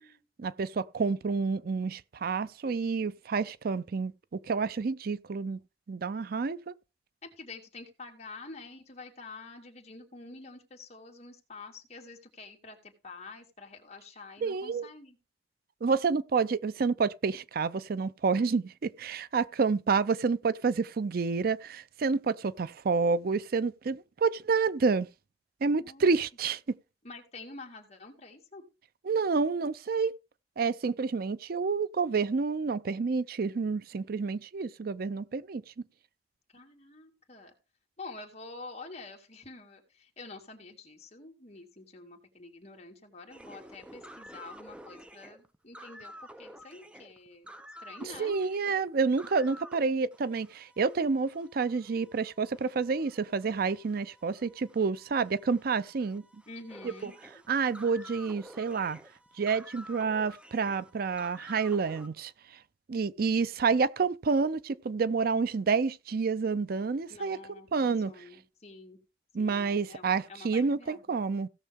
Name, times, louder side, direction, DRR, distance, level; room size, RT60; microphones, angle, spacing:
voice 1, 0.4-4.1 4.5-5.6 5.9-6.7 14.4-14.9 15.8-25.1 25.6-26.6 29.1-30.1 30.6-35.6 48.2-56.2 56.8-57.1 57.5-59.0 59.4-62.3 62.9-67.4 67.7-68.2 69.3-71.5, right 4 dB, 55° right, 0.5 m, -29 dB
voice 2, 7.2-15.2 25.8-26.2 27.0-28.6 36.5-37.5 38.0-47.5 47.8-48.4 56.5-57.4 67.1-69.0 69.4-71.0, left 3 dB, 40° left, 2.4 m, -48 dB
sound 1, 43.3-49.8 50.1-62.1, equal, 5° right, 0.6 m, -51 dB
16.5 x 6.5 x 3.6 m
head